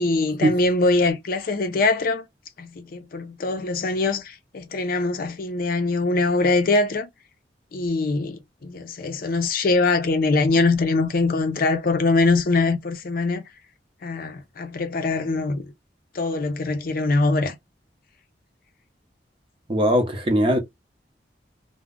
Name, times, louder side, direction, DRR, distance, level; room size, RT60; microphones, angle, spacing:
voice 1, 0.0-2.2 2.6-7.1 7.7-13.4 14.0-15.7 16.1-17.6, left 3 dB, 55° left, 0.5 m, -23 dB
voice 2, 19.7-20.6, equal, 30° right, 0.7 m, -20 dB
2.3 x 2.1 x 3.5 m
head